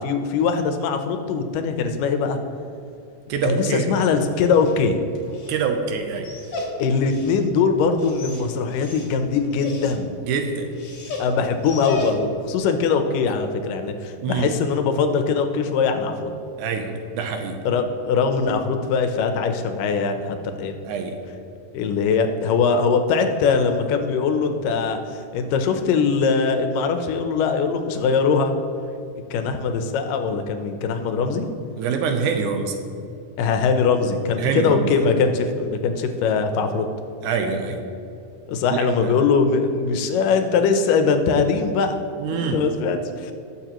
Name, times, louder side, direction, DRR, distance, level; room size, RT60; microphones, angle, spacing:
voice 1, 0.0-2.4 3.4-5.0 6.8-10.1 11.2-16.3 17.6-20.7 21.7-28.5 29.3-31.5 33.4-36.9 38.5-42.0 42.3-43.3, left 5 dB, 90° left, 6 dB, 2.5 m, -21 dB
voice 2, 3.3-4.0 5.5-6.3 10.2-10.7 14.2-14.5 16.6-17.6 20.9-21.2 31.7-32.8 34.4-35.1 37.2-37.8 38.7-39.1 42.2-42.7, right 5 dB, 75° right, 5 dB, 2.2 m, -25 dB
Dog, 4.2-12.5, left 2 dB, 60° left, 2.6 m, -34 dB
20.0 x 6.9 x 3.0 m, 2.6 s
omnidirectional pair, 3.7 m